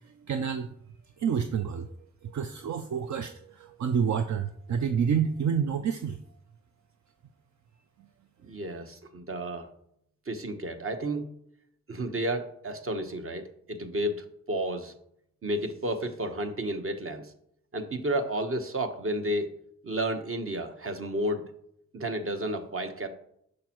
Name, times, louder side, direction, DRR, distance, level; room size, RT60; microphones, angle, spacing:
voice 1, 0.3-0.7 1.2-1.9 2.3-6.2, right 7 dB, 65° right, 8 dB, 0.5 m, -28 dB
voice 2, 8.4-9.7 10.3-11.3 11.9-14.9 15.4-17.3 17.7-19.6 19.8-21.5 21.9-23.1, right 1 dB, 45° right, 6 dB, 1.0 m, -32 dB
6.4 x 6.3 x 3.0 m, 0.71 s
cardioid pair, 45°, 31 cm